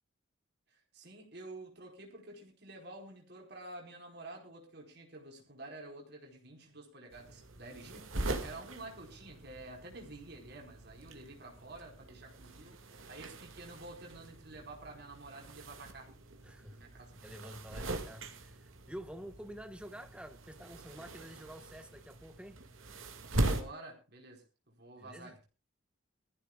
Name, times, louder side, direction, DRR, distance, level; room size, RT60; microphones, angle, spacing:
voice 1, 0.9-16.1 16.7-17.1 23.5-25.5, right 2 dB, 50° right, 4.6 m, -50 dB
sound 1, 7.1-23.6, right 2 dB, 75° right, 2.1 m, -41 dB
voice 2, 16.4-16.8 17.1-22.6 25.0-25.4, equal, 5° right, 1.3 m, -49 dB
23.0 x 14.5 x 2.4 m
head